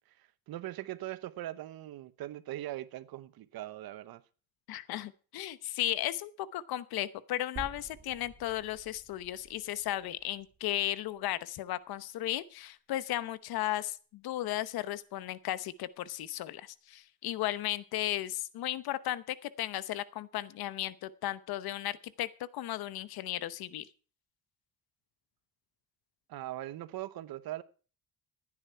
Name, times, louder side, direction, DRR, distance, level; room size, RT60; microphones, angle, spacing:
voice 1, 0.2-4.2 26.3-27.6, right 14 dB, 80° right, 1.0 m, -41 dB
voice 2, 4.7-23.9, left 14 dB, 85° left, 0.9 m, -35 dB
sound 1, 7.6-11.7 12.1-12.2 13.6-13.7, right 4 dB, 45° right, 6.1 m, -51 dB
15.0 x 9.7 x 4.6 m
cardioid pair, 125°, 36 cm